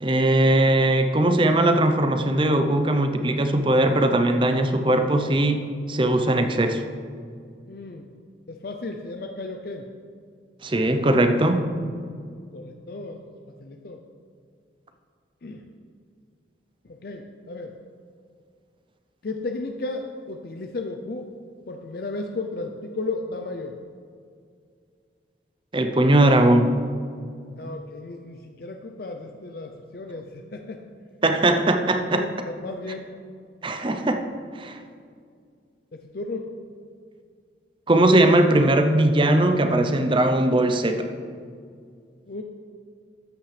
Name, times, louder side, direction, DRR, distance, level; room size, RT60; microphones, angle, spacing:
voice 1, 0.0-6.8 10.6-11.6 25.7-26.7 31.2-32.2 33.6-34.2 34.6-34.8 37.9-41.1, right 1 dB, 25° right, 7 dB, 0.6 m, -20 dB
voice 2, 7.7-8.1 8.5-9.9 12.5-13.2 13.6-14.0 15.4-15.6 16.8-17.8 19.2-21.3 21.7-23.8 26.1-26.3 27.6-30.9 32.0-33.1 35.9-36.6 42.3-42.4, left 3 dB, 55° left, 4 dB, 0.5 m, -34 dB
13.0 x 8.5 x 3.3 m, 2.2 s
head